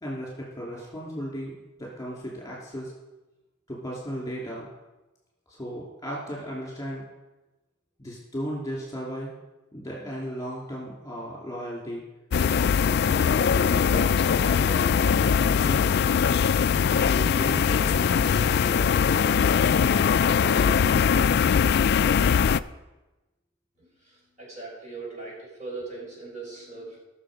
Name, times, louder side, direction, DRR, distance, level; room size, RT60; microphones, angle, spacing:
voice 1, 0.0-2.9 3.7-4.7 5.5-7.0 8.0-9.3 9.7-12.0 12.8-16.0 16.9-20.0 20.4-21.0, equal, 15° left, -4 dB, 3.1 m, -36 dB
sound 1, 12.3-22.6, left 7 dB, 55° left, 0.3 m, -21 dB
voice 2, 24.4-27.0, right 3 dB, 35° right, -4 dB, 5.0 m, -39 dB
19.5 x 6.8 x 5.1 m, 1.1 s
head